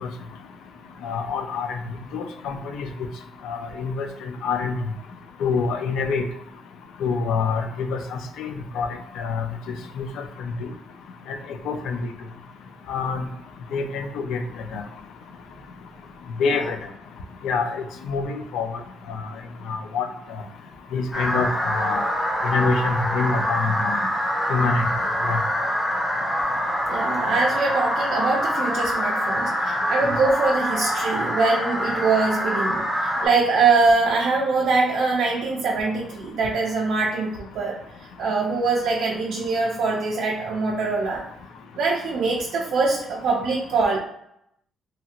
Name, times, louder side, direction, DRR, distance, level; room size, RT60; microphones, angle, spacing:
voice 1, 1.0-1.8 2.1-2.9 3.4-4.1 4.4-4.8 5.4-6.2 7.0-8.9 9.2-9.5 10.0-10.1 10.6-10.7 11.7-12.0 12.9-13.2 13.7-14.4 14.7-14.8 16.4-16.8 17.4-18.7 19.7-20.1 20.9-22.0 22.4-24.0 24.5-24.8 25.2-25.4, left 5 dB, 85° left, 6 dB, 0.4 m, -25 dB
sound 1, 21.1-33.3, equal, 10° left, 0.7 m, -25 dB
voice 2, 26.9-37.8 38.2-41.3 41.8-44.0, right 4 dB, 80° right, -3 dB, 0.4 m, -23 dB
2.8 x 2.7 x 2.4 m, 0.76 s
cardioid pair, 90°, 0 cm